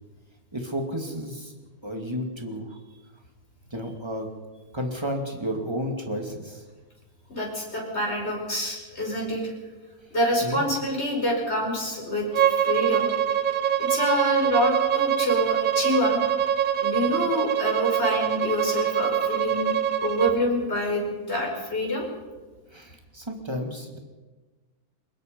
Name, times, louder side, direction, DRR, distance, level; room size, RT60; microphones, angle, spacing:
voice 1, 0.5-1.5 1.8-2.8 3.7-4.3 4.7-6.6 10.4-10.7 22.7-24.0, equal, 15° right, 3 dB, 2.5 m, -32 dB
voice 2, 7.3-9.5 10.1-12.3 12.6-13.1 13.8-16.2 16.8-19.7 20.0-22.1, left 1 dB, 45° left, -1 dB, 5.8 m, -26 dB
Bowed string instrument, 12.3-20.4, right 10 dB, 70° right, 1.3 m, -24 dB
23.5 x 21.0 x 5.3 m, 1.3 s
omnidirectional pair, 1.5 m